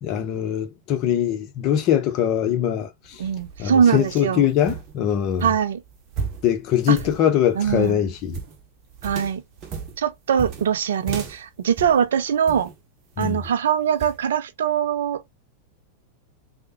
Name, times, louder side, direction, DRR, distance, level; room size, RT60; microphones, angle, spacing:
voice 1, 0.0-3.2 3.6-5.5 6.4-8.4 13.2-13.5, left 10 dB, 40° left, 0.7 m, -22 dB
sound 1, 3.0-12.8 13.2-13.6 14.0-14.2, right 5 dB, 35° right, 0.9 m, -36 dB
voice 2, 3.2-4.5 5.4-5.8 6.9-7.0 7.6-8.0 9.0-9.4 10.0-12.7 13.2-15.2, right 8 dB, 60° right, 0.4 m, -22 dB
3.3 x 2.1 x 2.9 m
figure-of-eight pair, 90°, 0 cm